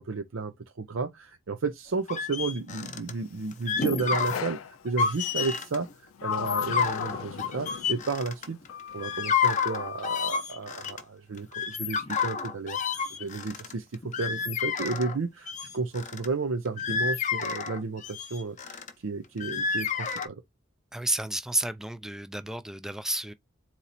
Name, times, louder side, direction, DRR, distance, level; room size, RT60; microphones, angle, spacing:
voice 1, 0.0-8.6 8.9-20.4, right 4 dB, 80° right, 0.6 m, -33 dB
sound 1, 2.1-3.1 3.5-4.5 4.9-5.8 6.3-8.7 9.0-11.0 11.4-15.2 15.5-16.3 16.7-18.9 19.4-20.3, left 6 dB, 35° left, 0.7 m, -30 dB
Sliding door, 4.3-4.8 5.8-8.2 8.7-10.1, left 7 dB, 85° left, 0.4 m, -36 dB
voice 2, 20.9-23.3, right 1 dB, 5° right, 0.4 m, -31 dB
4.2 x 3.0 x 4.0 m
head